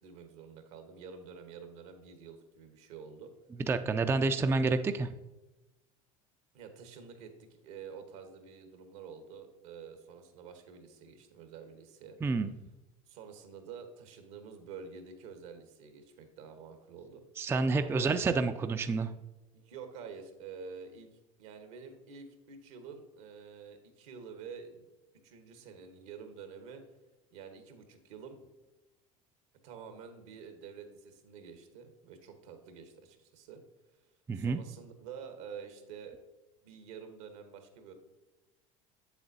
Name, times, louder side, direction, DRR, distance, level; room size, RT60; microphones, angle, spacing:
voice 1, 0.0-3.3 6.5-12.2 13.1-17.2 17.8-18.1 19.5-21.1 21.4-24.9 25.2-26.8 27.3-28.4 29.6-33.6 34.3-36.2 36.6-37.9, right 6 dB, 75° right, 7 dB, 1.2 m, -48 dB
voice 2, 3.7-5.1 12.2-12.5 17.4-19.1 34.3-34.6, right 3 dB, 15° right, 9 dB, 0.3 m, -29 dB
7.7 x 7.0 x 2.7 m, 1.0 s
hypercardioid pair, 85°, 18 cm